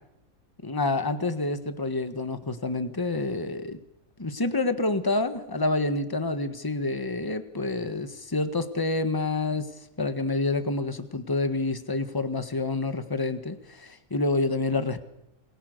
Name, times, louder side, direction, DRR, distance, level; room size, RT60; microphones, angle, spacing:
voice 1, 0.6-3.8 4.2-9.7 10.0-15.0, left 2 dB, 15° left, 9 dB, 1.5 m, -28 dB
28.5 x 21.0 x 6.7 m, 0.83 s
omnidirectional pair, 1.5 m